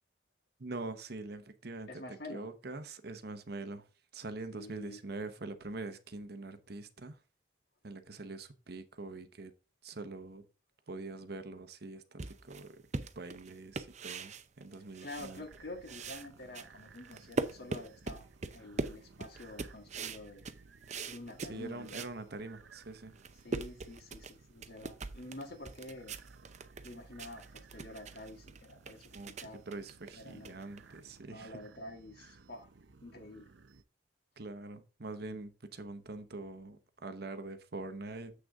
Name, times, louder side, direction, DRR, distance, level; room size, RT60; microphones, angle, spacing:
voice 1, 0.6-3.9 4.1-7.2 7.8-9.5 9.8-10.4 10.9-12.8 13.1-15.4 21.4-23.1 29.1-29.3 29.7-31.6 32.2-32.3 34.4-38.3, right 2 dB, 60° right, 1.0 m, -44 dB
voice 2, 1.9-2.5 4.5-5.0 15.0-20.5 21.1-22.0 23.4-26.2 26.8-29.1 29.4-29.6 30.2-30.6 31.3-32.7 33.0-33.5, left 2 dB, 60° left, 1.8 m, -48 dB
sound 1, 12.2-15.6 15.8-22.2 22.6-22.7 23.1-31.2, right 3 dB, 40° right, 0.6 m, -42 dB
sound 2, 15.1-33.8, right 4 dB, 85° right, 0.7 m, -59 dB
7.7 x 6.4 x 3.6 m
head